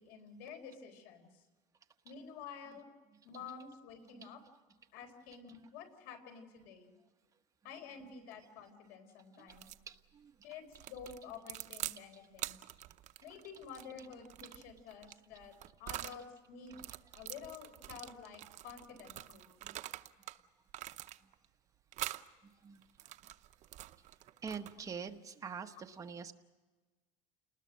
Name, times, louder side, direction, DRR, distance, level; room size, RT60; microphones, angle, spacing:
voice 1, 0.0-1.4 2.0-2.9 3.2-4.4 4.9-6.9 7.6-9.7 10.4-12.6 13.2-16.8 17.1-19.5, left 6 dB, 75° left, 6 dB, 4.4 m, -50 dB
sound 1, 9.5-9.9 10.7-12.0 12.4-16.2 16.7-20.4 20.7-21.5 21.9-22.3 22.8-24.9, right 14 dB, 50° right, 0.8 m, -45 dB
voice 2, 9.9-10.3 12.1-12.2 13.2-13.4 14.4-14.7 17.0-17.1 19.6-19.8 21.2-21.3 22.4-22.8 24.4-26.3, right 6 dB, 20° right, 5 dB, 1.2 m, -46 dB
29.0 x 20.0 x 6.4 m, 1.3 s
cardioid pair, 155°, 16 cm